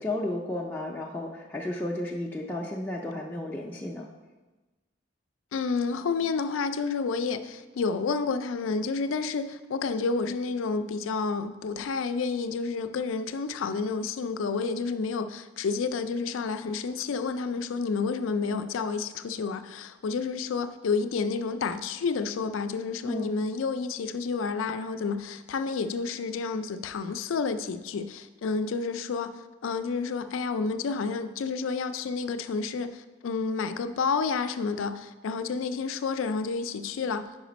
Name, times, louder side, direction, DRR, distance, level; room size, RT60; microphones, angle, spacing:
voice 1, 0.0-4.1 23.1-23.3, left 1 dB, 10° left, 0.4 m, -33 dB
voice 2, 5.5-37.3, left 4 dB, 80° left, 0.4 m, -30 dB
5.0 x 4.9 x 5.1 m
head